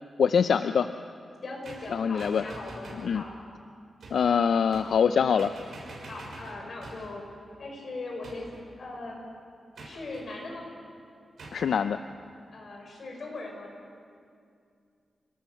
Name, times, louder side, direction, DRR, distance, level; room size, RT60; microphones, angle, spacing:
voice 1, 0.2-0.9 1.9-2.4 3.0-3.2 4.1-5.5 11.5-12.0, left 7 dB, 80° left, 10 dB, 0.5 m, -24 dB
voice 2, 1.4-3.3 6.1-7.3 7.6-8.5 8.8-9.3 9.8-10.7 12.5-13.7, left 2 dB, 50° left, 0 dB, 5.9 m, -39 dB
sound 1, 1.6-3.1 4.0-4.3 4.7-5.1 5.4-7.2 8.2-8.7 9.8-10.3 11.4-11.7, right 2 dB, 75° right, 6.0 m, -45 dB
29.0 x 18.5 x 6.6 m, 2.3 s
wide cardioid pair, 150°, 0 cm